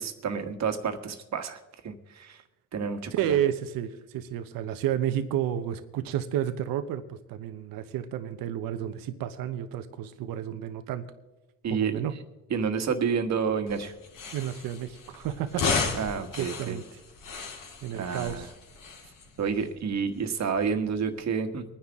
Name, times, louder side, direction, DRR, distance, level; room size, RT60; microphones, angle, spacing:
voice 1, 0.0-1.6 1.8-2.4 2.7-3.4 11.6-12.0 12.5-13.9 15.9-16.8 17.9-18.5 19.4-21.6, right 6 dB, 50° right, 7 dB, 1.6 m, -29 dB
voice 2, 3.1-11.0 11.7-12.1 14.3-16.8 17.8-18.5, right 10 dB, 75° right, 9 dB, 1.0 m, -31 dB
sound 1, 13.7-21.2, left 4 dB, 65° left, 2.9 m, -35 dB
24.5 x 10.0 x 3.6 m, 1.0 s
cardioid pair, 110°, 35 cm